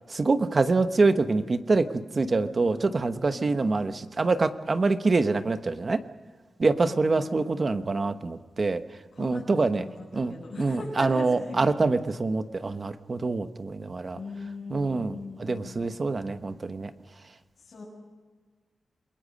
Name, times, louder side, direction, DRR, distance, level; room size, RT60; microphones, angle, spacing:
voice 1, 0.1-6.0 6.6-8.8 9.2-9.8 10.1-14.2 14.7-16.9, right 3 dB, 35° right, 10 dB, 1.0 m, -25 dB
voice 2, 2.2-2.9 3.3-3.8 6.8-7.7 9.1-11.8 14.1-15.8 17.6-17.8, left 3 dB, 50° left, -7 dB, 6.7 m, -40 dB
28.5 x 21.5 x 5.2 m, 1.4 s
wide cardioid pair, 160°, 0 cm